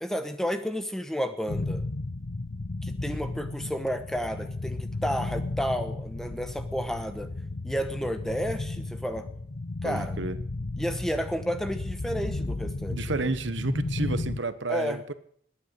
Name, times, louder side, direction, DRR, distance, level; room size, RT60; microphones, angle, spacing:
voice 1, 0.0-1.8 2.8-7.3 7.6-9.2 9.8-10.2 10.8-13.3 14.7-15.0, equal, ahead, 8 dB, 1.1 m, -31 dB
sound 1, 1.5-14.4, left 2 dB, 60° left, 0.8 m, -34 dB
voice 2, 9.8-10.4 12.9-15.1, right 3 dB, 80° right, 13 dB, 1.1 m, -31 dB
21.0 x 9.2 x 6.7 m, 0.62 s
head